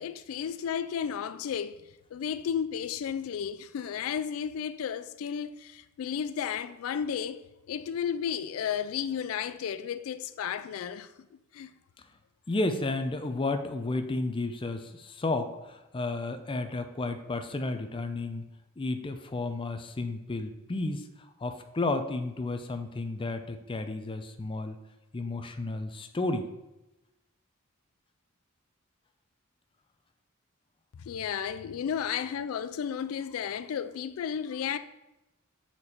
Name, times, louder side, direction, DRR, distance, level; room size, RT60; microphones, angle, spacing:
voice 1, 0.0-1.8 2.1-11.1 11.5-11.7 31.0-34.8, left 8 dB, 80° left, 0.3 m, -33 dB
voice 2, 12.5-18.4 18.8-21.1 21.4-24.8 25.1-26.5 32.1-32.2, left 2 dB, 25° left, 0.5 m, -32 dB
6.7 x 4.4 x 4.2 m
head